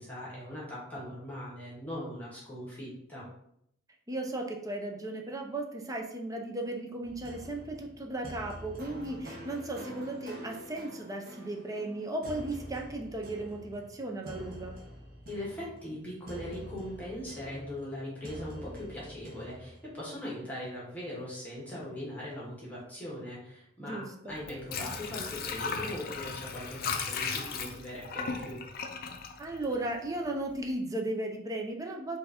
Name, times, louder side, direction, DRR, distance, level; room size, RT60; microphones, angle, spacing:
voice 1, 0.0-3.3 15.3-28.6, left 1 dB, 10° left, -7 dB, 1.6 m, -40 dB
voice 2, 4.1-14.7 23.8-24.4 29.4-32.2, right 2 dB, 20° right, 2 dB, 0.6 m, -36 dB
sound 1, 7.0-19.9, equal, 50° right, 1.1 m, -46 dB
Water / Sink (filling or washing), 24.3-30.2 30.6-30.7, left 5 dB, 50° left, 0.5 m, -36 dB
4.3 x 2.7 x 4.2 m, 0.72 s
head